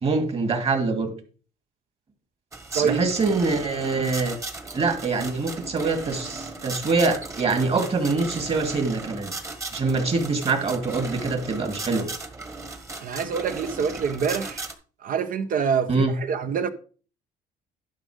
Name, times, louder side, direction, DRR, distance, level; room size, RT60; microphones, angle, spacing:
voice 1, 0.0-1.1 2.7-4.4 4.7-9.3 9.7-12.1 15.9-16.1, right 3 dB, 35° right, 2.4 m, -24 dB
sound 1, 2.5-14.7, right 2 dB, 15° right, 1.4 m, -37 dB
voice 2, 13.0-14.6 15.0-16.7, right 6 dB, 55° right, 1.1 m, -26 dB
11.5 x 5.4 x 5.1 m
cardioid pair, 110°, 17 cm